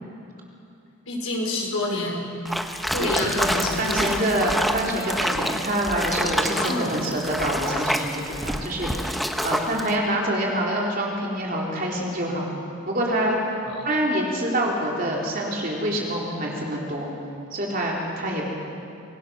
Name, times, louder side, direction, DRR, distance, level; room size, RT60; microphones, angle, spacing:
voice 1, 1.1-2.3 2.9-4.2 6.5-7.0 13.7-13.9, left 2 dB, 80° left, -2 dB, 5.1 m, -28 dB
sound 1, 2.5-9.9, equal, ahead, 0.9 m, -27 dB
voice 2, 3.0-12.5 12.9-13.4 13.8-17.1 17.5-18.5, right 1 dB, 40° right, -2 dB, 3.5 m, -26 dB
25.5 x 18.5 x 6.2 m, 2.6 s
head